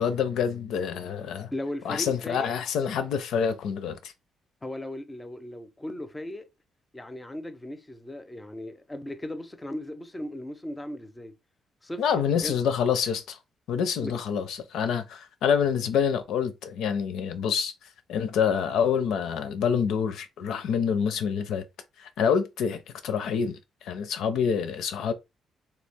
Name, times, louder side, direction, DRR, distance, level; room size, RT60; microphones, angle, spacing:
voice 1, 0.0-1.5 1.8-4.1 12.0-13.4 13.7-17.7 18.1-21.6 22.0-25.1, left 7 dB, 80° left, 0.5 m, -27 dB
voice 2, 1.5-2.5 4.6-6.5 6.9-11.3 11.8-12.0 12.3-12.6 14.0-14.2, left 1 dB, 15° left, 0.6 m, -37 dB
3.1 x 2.3 x 3.4 m
cardioid pair, 90°, 0 cm